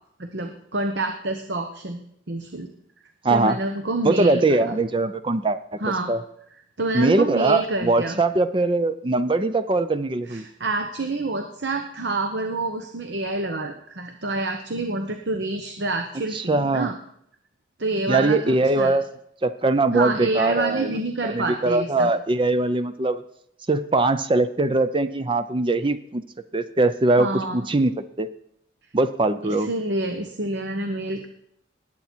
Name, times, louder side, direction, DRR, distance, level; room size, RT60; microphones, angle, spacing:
voice 1, 0.2-2.0 2.3-2.7 3.3-4.7 5.8-6.1 6.8-8.2 10.3-17.0 17.8-19.0 19.9-22.1 27.2-27.6 29.4-31.3, right 2 dB, 60° right, 6 dB, 1.0 m, -28 dB
voice 2, 3.2-3.6 4.0-5.6 6.1-6.2 6.9-10.4 16.3-16.9 18.1-19.1 19.4-23.2 23.7-26.2 26.5-27.9 28.2-28.3 28.9-29.7, right 2 dB, 25° right, 11 dB, 0.5 m, -21 dB
19.5 x 8.5 x 4.5 m, 0.73 s
head